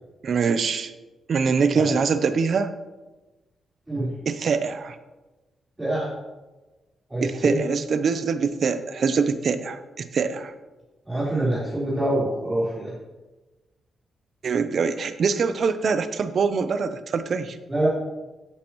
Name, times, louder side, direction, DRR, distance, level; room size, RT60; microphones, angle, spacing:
voice 1, 0.2-0.9 1.3-2.7 4.3-5.0 7.2-10.5 14.4-17.6, right 5 dB, 55° right, 11 dB, 0.8 m, -24 dB
voice 2, 7.1-7.6 11.0-12.9 17.7-17.9, right 1 dB, 15° right, -10 dB, 4.1 m, -25 dB
16.0 x 8.7 x 3.1 m, 1.1 s
cardioid pair, 125°, 0 cm